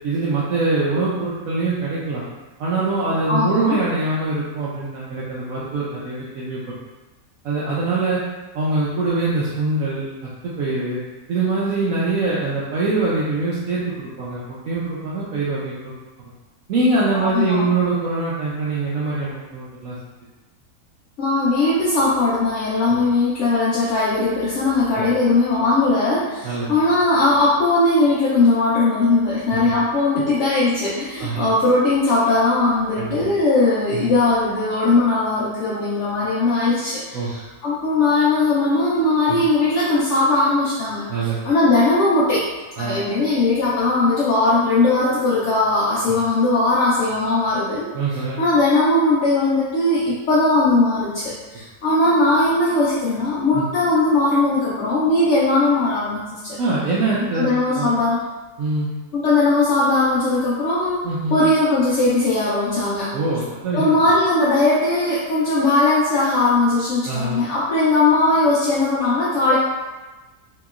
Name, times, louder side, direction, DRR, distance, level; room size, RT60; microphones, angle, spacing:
voice 1, 0.0-2.2 2.6-6.6 7.4-8.2 8.5-10.0 10.4-11.0 11.3-15.9 16.7-20.0 22.9-23.0 26.4-26.7 29.5-29.7 31.2-31.5 32.9-33.2 33.9-34.1 37.1-37.3 39.3-39.4 41.1-41.4 42.8-43.0 47.9-48.4 53.5-53.6 56.6-57.9 58.6-58.9 61.0-61.4 63.1-63.8 67.1-67.4, right 3 dB, 70° right, -8 dB, 0.9 m, -23 dB
voice 2, 3.3-3.8 17.1-17.6 21.2-42.4 42.8-47.9 48.4-56.6 57.3-58.2 59.1-63.1 63.7-69.6, left 2 dB, 65° left, -8 dB, 0.7 m, -19 dB
2.9 x 2.9 x 2.3 m, 1.2 s
omnidirectional pair, 1.7 m